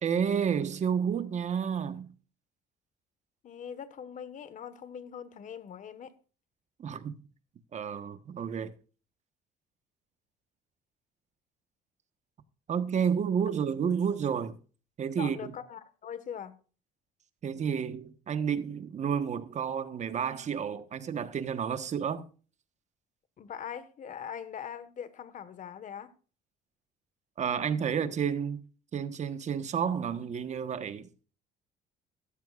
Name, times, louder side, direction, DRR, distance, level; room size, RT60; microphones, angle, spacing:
voice 1, 0.0-2.1 6.8-7.2 7.7-8.7 12.7-14.5 15.0-15.5 17.4-22.3 27.4-28.6 28.9-31.1, right 7 dB, 45° right, 1.3 m, -30 dB
voice 2, 3.4-6.1 15.2-16.5 23.4-26.1, left 8 dB, 50° left, 1.5 m, -42 dB
14.5 x 13.5 x 2.5 m
cardioid pair, 110°, 17 cm